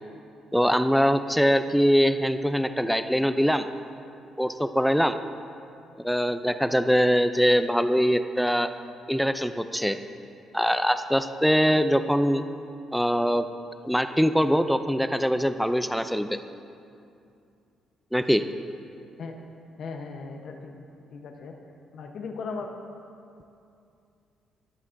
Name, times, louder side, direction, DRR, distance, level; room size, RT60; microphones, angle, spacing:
voice 1, 0.5-3.7 4.4-5.2 6.0-8.7 9.1-10.0 10.5-12.4 12.9-13.5 13.8-16.4 18.1-18.4, equal, ahead, 10 dB, 0.4 m, -23 dB
voice 2, 19.8-20.8 21.1-21.5 21.9-22.7, left 4 dB, 65° left, 3 dB, 0.9 m, -37 dB
18.0 x 8.2 x 2.6 m, 2.5 s
cardioid pair, 90°, 0 cm